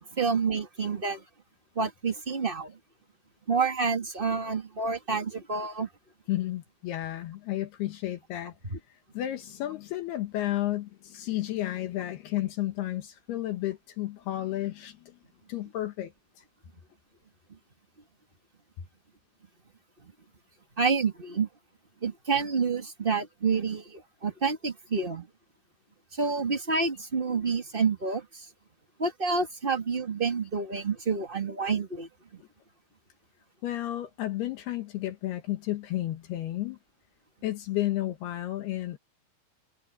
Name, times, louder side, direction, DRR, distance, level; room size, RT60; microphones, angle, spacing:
voice 1, 0.1-1.2 1.7-2.8 3.5-5.9 8.7-8.8 20.8-21.5 22.0-25.3 26.1-28.5 29.0-32.4, right 4 dB, 30° right, 0.9 m, -28 dB
voice 2, 6.3-8.5 9.1-15.1 15.5-16.1 16.4-16.5 33.6-36.8 37.4-39.0, left 14 dB, 80° left, 3.4 m, -32 dB
omnidirectional pair, 4.6 m